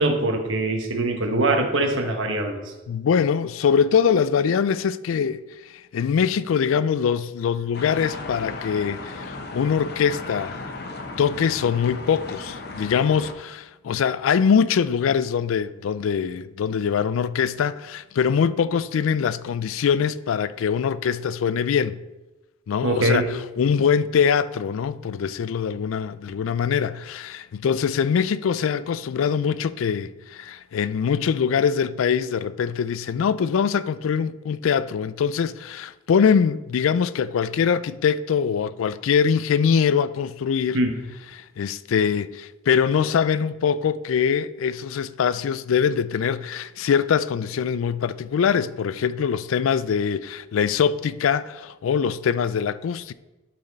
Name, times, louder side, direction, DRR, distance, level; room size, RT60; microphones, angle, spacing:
voice 1, 0.0-2.6 22.8-23.3 40.7-40.9, right 2 dB, 75° right, 1.1 m, -22 dB
voice 2, 2.9-5.4 5.9-10.7 11.2-22.0 22.7-40.8 41.3-53.1, left 7 dB, 85° left, 0.3 m, -23 dB
sound 1, 7.7-13.3, left 3 dB, 50° left, 0.8 m, -36 dB
11.5 x 4.2 x 4.0 m
head